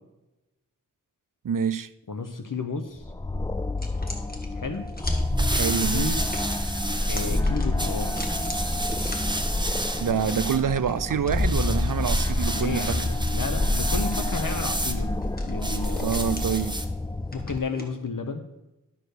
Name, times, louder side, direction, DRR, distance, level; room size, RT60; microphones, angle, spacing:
voice 1, 1.4-1.9 5.5-6.1 10.0-13.0 16.0-16.8, right 7 dB, 75° right, 0.5 m, -26 dB
voice 2, 2.1-3.1 4.5-4.9 5.6-6.2 7.1-8.2 12.5-15.1 15.5-16.2 17.3-18.4, left 4 dB, 75° left, 0.9 m, -32 dB
sound 1, 3.0-17.6, left 2 dB, 10° left, 0.3 m, -28 dB
sound 2, 3.8-18.0, left 1 dB, 25° left, 1.7 m, -43 dB
sound 3, 5.1-17.0, right 1 dB, 15° right, 0.9 m, -32 dB
12.5 x 4.6 x 6.6 m
wide cardioid pair, 60°, 33 cm